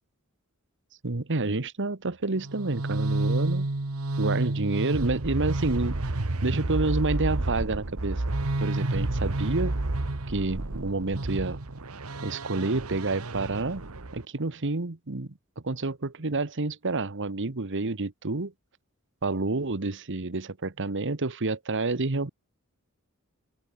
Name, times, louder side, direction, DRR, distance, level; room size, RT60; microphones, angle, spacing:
voice 1, 1.0-3.7 4.2-8.2 8.6-9.8 10.3-11.6 12.2-13.8 14.1-15.3 15.6-18.5 19.2-22.3, right 3 dB, 55° right, 1.3 m, -29 dB
sound 1, 2.4-14.2, right 2 dB, 75° right, 1.4 m, -30 dB
open air
head